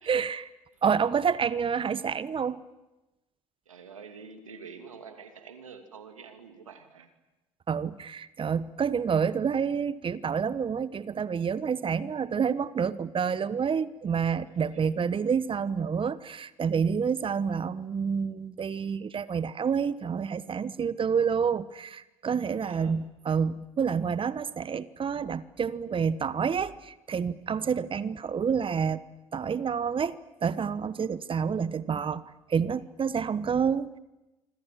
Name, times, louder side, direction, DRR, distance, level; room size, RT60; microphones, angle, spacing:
voice 1, 0.0-0.5 0.8-2.6 7.7-29.0 29.3-32.2 32.5-34.0, right 6 dB, 30° right, 17 dB, 1.1 m, -28 dB
voice 2, 3.7-7.1 14.5-14.8 22.6-22.9, right 5 dB, 90° right, 7 dB, 2.6 m, -47 dB
26.0 x 25.5 x 7.7 m, 1.0 s
hypercardioid pair, 65°, 17 cm